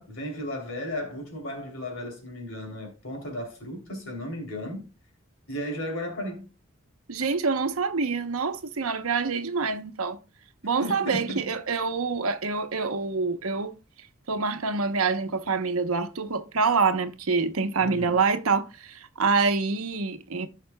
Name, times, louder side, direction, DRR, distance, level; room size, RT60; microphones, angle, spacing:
voice 1, 0.0-4.9 5.5-6.5 10.8-11.5 17.8-18.2, left 1 dB, 70° left, 3.1 m, -35 dB
voice 2, 7.1-10.2 10.6-13.7 14.3-20.5, right 4 dB, 90° right, 0.9 m, -26 dB
15.0 x 5.8 x 2.2 m
head